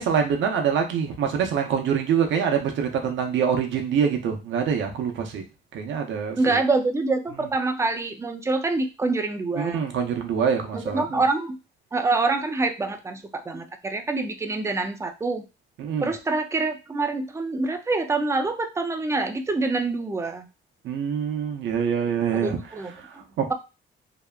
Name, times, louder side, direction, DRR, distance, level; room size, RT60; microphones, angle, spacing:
voice 1, 0.0-5.4 5.7-6.6 9.6-11.2 15.8-16.1 20.8-22.6 23.0-23.5, right 7 dB, 70° right, 4 dB, 0.7 m, -25 dB
voice 2, 6.4-9.8 10.7-11.6 11.9-15.4 16.0-20.5 22.3-22.9, right 3 dB, 15° right, 6 dB, 0.4 m, -26 dB
2.8 x 2.2 x 2.3 m, 0.29 s
cardioid pair, 90°, 20 cm